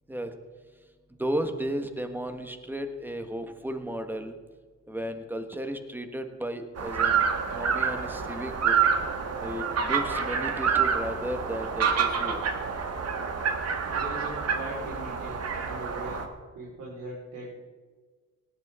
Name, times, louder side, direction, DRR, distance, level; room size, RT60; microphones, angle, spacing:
voice 1, 1.2-4.3 4.9-7.3 7.5-8.8 9.4-12.4, equal, 5° right, 6 dB, 1.5 m, -34 dB
sound 1, 6.8-16.3, right 6 dB, 55° right, 1.7 m, -28 dB
voice 2, 13.8-16.3 16.5-17.6, right 1 dB, 75° right, -6 dB, 4.5 m, -40 dB
18.5 x 11.0 x 3.8 m, 1.4 s
cardioid pair, 90°, 30 cm